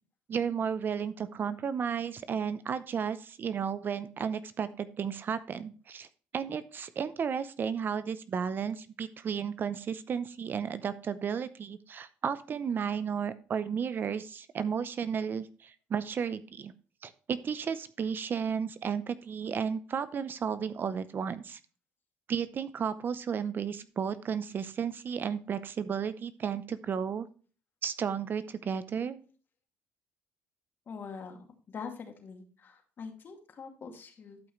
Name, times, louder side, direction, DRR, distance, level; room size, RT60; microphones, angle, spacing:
voice 1, 0.3-6.1 6.3-16.7 17.0-21.6 22.3-27.3 27.8-29.2, right 7 dB, 45° right, 14 dB, 0.6 m, -33 dB
voice 2, 30.9-34.4, left 5 dB, 45° left, 4 dB, 2.2 m, -44 dB
12.0 x 5.5 x 3.1 m, 0.39 s
supercardioid pair, 90°, 5 cm